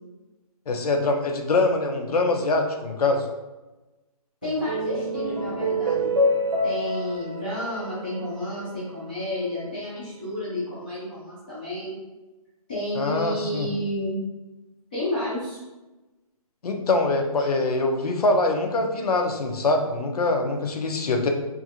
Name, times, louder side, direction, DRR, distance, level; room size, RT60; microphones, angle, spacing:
voice 1, 0.7-3.3 12.9-13.7 16.6-21.3, left 2 dB, 80° left, 3 dB, 0.5 m, -23 dB
voice 2, 4.4-6.2 6.6-12.0 12.7-14.2 14.9-15.6, left 1 dB, 15° left, -13 dB, 0.5 m, -31 dB
sound 1, 4.4-9.0, equal, 60° right, 0.8 m, -27 dB
2.5 x 2.5 x 2.7 m, 1.1 s
hypercardioid pair, 175°, 19 cm